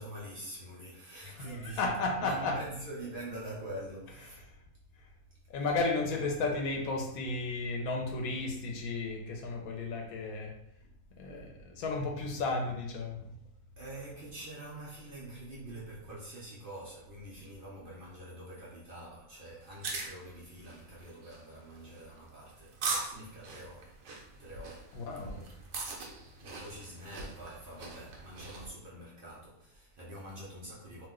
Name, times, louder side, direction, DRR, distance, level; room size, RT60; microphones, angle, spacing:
voice 1, 0.0-1.9 2.2-4.4 5.6-5.8 13.8-24.0 24.4-25.5 26.4-31.1, right 1 dB, 50° right, 0.7 m, -45 dB
voice 2, 1.2-2.6 4.3-4.4 5.5-10.5 11.2-13.2 24.9-25.4, left 3 dB, 80° left, 1.1 m, -33 dB
sound 1, 19.6-28.7, right 3 dB, 75° right, 1.0 m, -41 dB
2.8 x 2.1 x 3.5 m
omnidirectional pair, 1.5 m